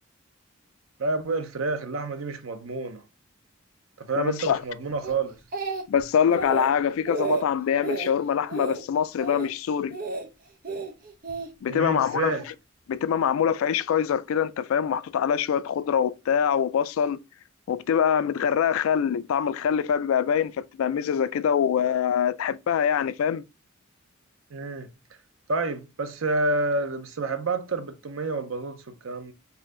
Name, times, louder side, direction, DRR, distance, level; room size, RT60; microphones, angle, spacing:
voice 1, 1.0-3.0 4.0-5.4 11.7-12.4 24.5-24.9 25.5-29.3, right 2 dB, 85° right, 0.7 m, -29 dB
voice 2, 4.2-4.6 5.9-10.0 11.6-12.4 12.9-17.2 17.7-23.4, left 8 dB, 85° left, 0.3 m, -24 dB
Speech, 5.0-6.0 6.3-6.7 7.1-7.4 7.8-8.1 8.5-8.8 9.2-9.5 9.9-10.3 10.6-11.5 12.2-12.5, right 4 dB, 45° right, 0.7 m, -31 dB
4.2 x 2.7 x 3.7 m
head